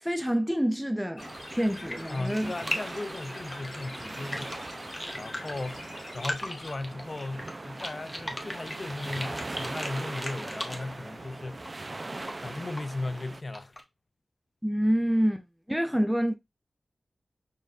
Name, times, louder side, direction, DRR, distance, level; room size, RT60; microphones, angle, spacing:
voice 1, 0.0-2.5 14.6-16.3, equal, ahead, 0.7 m, -27 dB
sound 1, 1.2-6.7, left 3 dB, 65° left, 1.0 m, -46 dB
sound 2, 1.2-13.4, right 2 dB, 45° right, 0.5 m, -40 dB
sound 3, 1.7-2.7 3.1-5.6 6.0-10.9 11.6-11.7 12.3-12.4 12.8-12.9 13.2-13.8, left 1 dB, 15° left, 1.0 m, -36 dB
voice 2, 2.1-4.6 5.1-5.9 6.1-11.7 12.4-13.8, left 2 dB, 45° left, 0.5 m, -36 dB
4.5 x 3.8 x 2.4 m
cardioid pair, 50°, 0 cm